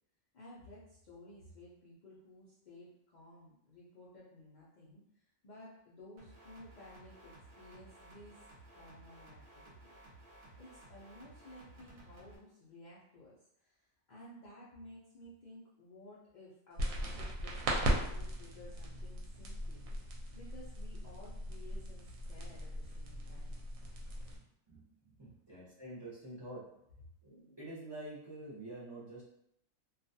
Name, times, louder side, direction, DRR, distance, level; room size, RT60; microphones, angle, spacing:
voice 1, 0.3-8.4 8.7-9.9 10.6-23.6, left 1 dB, 70° left, -7 dB, 0.4 m, -55 dB
sound 1, 6.2-12.4, right 2 dB, 55° right, 0.9 m, -57 dB
sound 2, 16.8-24.4, right 1 dB, 75° right, 1.0 m, -38 dB
voice 2, 24.4-26.7 27.2-29.3, right 1 dB, 25° right, -9 dB, 0.6 m, -48 dB
2.4 x 2.3 x 2.6 m, 0.76 s
omnidirectional pair, 1.5 m